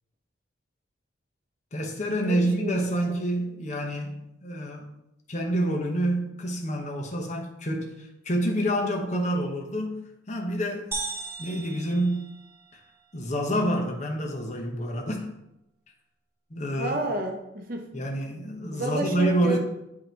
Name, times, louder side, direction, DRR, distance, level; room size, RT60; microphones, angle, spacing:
voice 1, 1.7-4.9 5.3-10.0 10.3-10.9 11.4-12.3 12.7-12.8 13.1-15.3 16.5-17.0 17.9-19.6, right 1 dB, 35° left, 1 dB, 0.9 m, -28 dB
voice 2, 2.2-2.7 3.1-3.2 16.8-17.9 18.7-19.6, right 2 dB, 50° right, 3 dB, 0.8 m, -30 dB
sound 1, 10.9-12.9, right 3 dB, 10° right, 0.7 m, -36 dB
8.1 x 2.9 x 4.5 m, 0.85 s
head